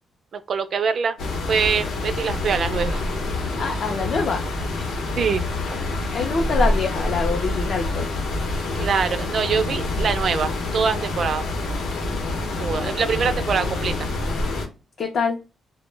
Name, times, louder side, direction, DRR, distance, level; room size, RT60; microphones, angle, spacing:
voice 1, 0.3-1.2 1.5-3.1 5.2-5.4 8.8-11.5 12.6-13.9, right 6 dB, 45° right, 0.3 m, -24 dB
sound 1, 1.2-14.7, left 2 dB, 80° left, 0.7 m, -26 dB
voice 2, 3.6-4.4 6.1-8.1 15.0-15.4, left 5 dB, 45° left, 0.4 m, -25 dB
2.0 x 2.0 x 3.2 m
cardioid pair, 155°, 0 cm